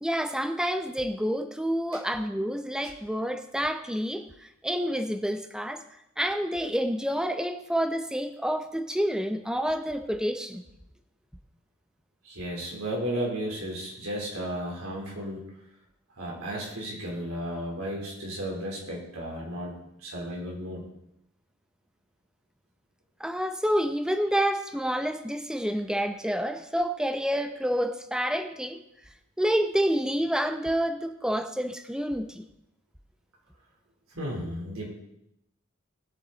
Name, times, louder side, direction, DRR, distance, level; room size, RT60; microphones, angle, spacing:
voice 1, 0.0-5.8 6.2-10.6 23.2-28.8 29.4-32.4, equal, 5° right, 7 dB, 0.7 m, -28 dB
voice 2, 12.2-15.5 16.2-20.9 34.2-34.9, equal, 90° right, -2 dB, 3.6 m, -34 dB
19.0 x 7.4 x 4.0 m, 0.84 s
head